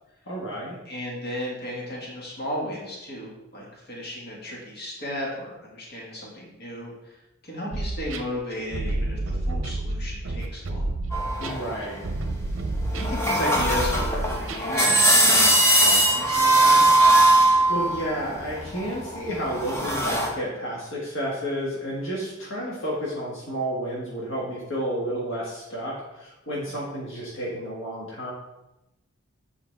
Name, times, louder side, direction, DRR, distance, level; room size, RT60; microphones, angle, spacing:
voice 1, 0.3-0.8 11.4-12.1 17.4-28.3, equal, 75° left, -5 dB, 1.6 m, -31 dB
voice 2, 0.9-10.9 12.9-16.9, left 1 dB, 55° left, -4 dB, 2.0 m, -34 dB
sound 1, 7.7-14.9, right 2 dB, 75° right, 0.7 m, -29 dB
sound 2, 11.1-12.1 12.8-20.3, right 1 dB, 15° left, 0.9 m, -20 dB
7.6 x 4.7 x 3.5 m, 0.93 s
head